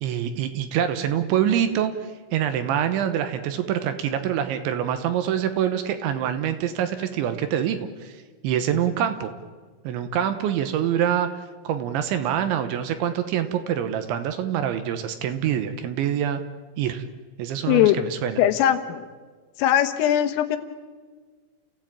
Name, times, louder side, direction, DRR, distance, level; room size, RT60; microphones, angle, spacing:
voice 1, 0.0-9.3 9.8-11.3 11.6-16.4 16.8-17.0 17.4-18.4, right 9 dB, 75° right, 9 dB, 3.1 m, -25 dB
voice 2, 17.7-18.0 18.4-19.0 19.6-20.6, left 11 dB, 80° left, 8 dB, 3.9 m, -20 dB
30.0 x 15.5 x 8.8 m, 1.5 s
omnidirectional pair, 5.9 m